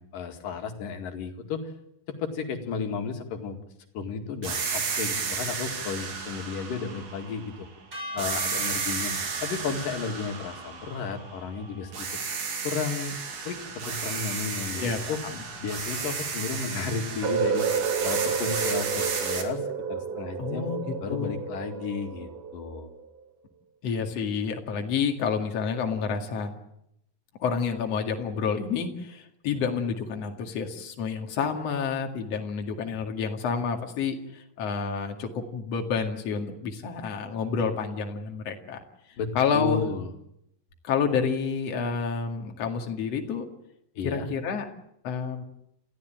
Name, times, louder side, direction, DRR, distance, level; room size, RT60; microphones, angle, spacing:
voice 1, 0.0-1.6 2.1-3.6 3.9-7.7 8.1-9.1 9.4-12.1 12.6-13.2 13.5-15.2 15.6-17.7 18.0-19.6 19.9-20.7 21.0-22.9 39.2-40.1 44.0-44.3, left 5 dB, 80° left, 6 dB, 3.8 m, -33 dB
sound 1, 4.4-7.7 8.2-11.5 11.9-19.4, right 5 dB, 50° right, 3.6 m, -33 dB
sound 2, 7.9-14.3, left 1 dB, 35° right, 8.5 m, -44 dB
voice 2, 14.8-15.4 20.4-21.4 23.8-26.5 27.4-38.8 39.3-39.8 40.8-43.5 44.0-44.7 45.0-45.4, left 6 dB, 50° left, 3 dB, 3.1 m, -29 dB
sound 3, 17.2-23.1, right 6 dB, 70° right, 2.9 m, -30 dB
28.0 x 15.0 x 9.0 m, 0.77 s
omnidirectional pair, 3.8 m